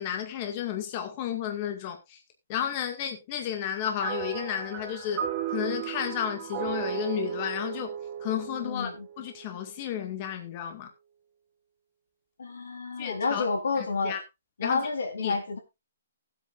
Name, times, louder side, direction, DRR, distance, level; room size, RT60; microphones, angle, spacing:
voice 1, 0.0-2.2 2.5-7.9 8.2-10.9 13.0-13.4 13.8-14.2 14.6-14.9 15.2-15.4, left 10 dB, 25° left, 2.1 m, -32 dB
sound 1, 4.0-9.5, right 9 dB, 15° right, 2.0 m, -35 dB
voice 2, 8.6-9.1 12.4-14.2 14.6-15.6, left 4 dB, 85° left, 3.9 m, -30 dB
19.0 x 8.3 x 2.6 m
hypercardioid pair, 170°, 0 cm